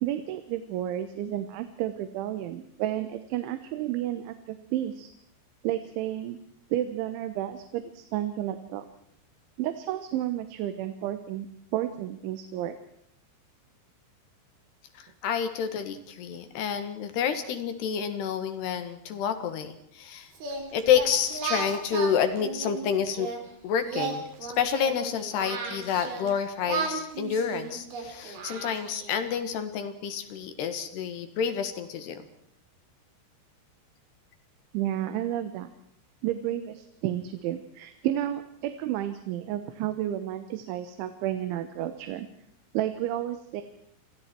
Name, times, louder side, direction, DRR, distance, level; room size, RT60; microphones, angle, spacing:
voice 1, 0.0-5.1 5.6-6.4 6.7-8.9 9.6-11.5 11.7-12.8 34.7-35.7 36.2-42.3 42.7-43.6, right 12 dB, 85° right, 9 dB, 3.6 m, -31 dB
voice 2, 15.2-20.3 20.7-23.3 23.6-24.3 24.6-32.2, left 8 dB, 70° left, 9 dB, 3.6 m, -29 dB
Singing, 20.3-23.4 23.8-26.3 26.7-29.3, right 4 dB, 55° right, 5.6 m, -34 dB
29.0 x 25.0 x 4.6 m, 0.69 s
omnidirectional pair, 5.3 m